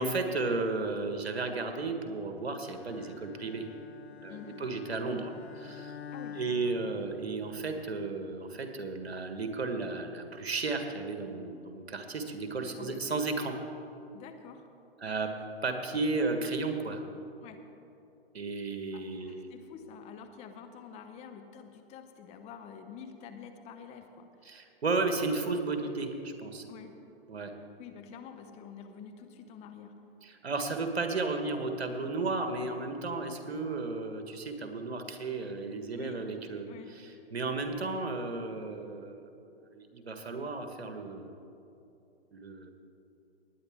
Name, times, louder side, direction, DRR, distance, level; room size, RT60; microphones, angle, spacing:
voice 1, 0.0-3.7 4.2-6.0 6.3-13.6 15.0-15.3 15.6-17.0 18.3-19.5 24.4-26.6 27.3-27.5 30.2-36.7 37.3-39.3 39.7-41.4 42.3-42.7, right 3 dB, 85° right, 5 dB, 1.6 m, -34 dB
Bowed string instrument, 2.7-7.7, left 7 dB, 85° left, 0.8 m, -48 dB
voice 2, 4.3-4.6 6.1-6.7 12.8-13.1 14.1-14.7 15.0-15.2 17.4-17.7 18.9-24.5 26.7-27.0 27.8-30.0 36.0-36.3 36.7-37.0, left 7 dB, 20° left, 7 dB, 0.7 m, -48 dB
19.0 x 9.5 x 3.6 m, 2.7 s
hypercardioid pair, 125°, 31 cm